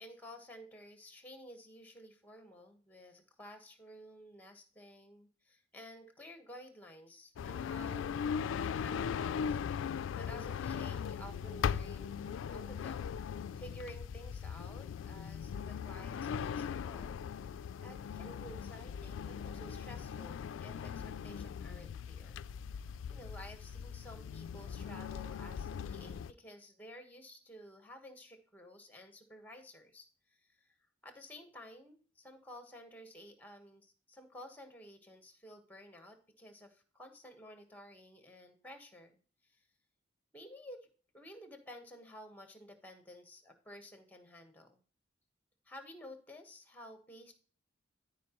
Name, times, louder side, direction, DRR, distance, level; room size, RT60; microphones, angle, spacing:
voice 1, 0.0-12.2 12.5-22.4 23.1-30.7 31.0-39.2 39.4-39.6 40.3-40.9 41.1-44.8 45.6-47.3, equal, 10° left, 6 dB, 1.3 m, -53 dB
sound 1, 7.4-26.3, left 7 dB, 80° left, 0.3 m, -39 dB
13.5 x 5.0 x 3.0 m, 0.39 s
head